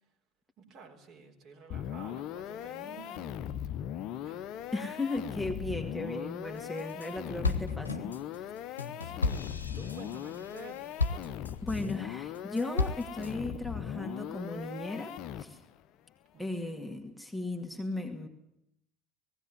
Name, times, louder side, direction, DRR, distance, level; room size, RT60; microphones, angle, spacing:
voice 1, 0.6-3.5 4.2-4.4 9.0-11.3 16.3-16.8, right 5 dB, 45° right, 2 dB, 4.0 m, -51 dB
sound 1, 1.7-15.8, left 10 dB, 50° left, 0.9 m, -39 dB
voice 2, 4.7-8.5 11.6-15.6 16.4-18.3, left 2 dB, ahead, 2 dB, 2.2 m, -36 dB
sound 2, 6.6-7.1 7.4-11.9 12.3-13.3, left 3 dB, 80° left, 1.1 m, -34 dB
19.0 x 16.5 x 9.6 m, 0.81 s
figure-of-eight pair, 60°, 0 cm